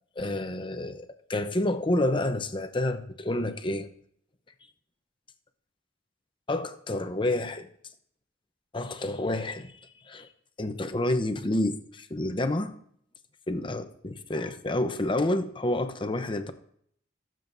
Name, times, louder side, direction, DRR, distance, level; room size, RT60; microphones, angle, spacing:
voice 1, 0.2-3.9 6.5-7.7 8.7-10.3 10.6-12.7 13.5-16.5, left 1 dB, 25° left, 8 dB, 0.7 m, -29 dB
19.0 x 7.7 x 2.6 m, 0.65 s
head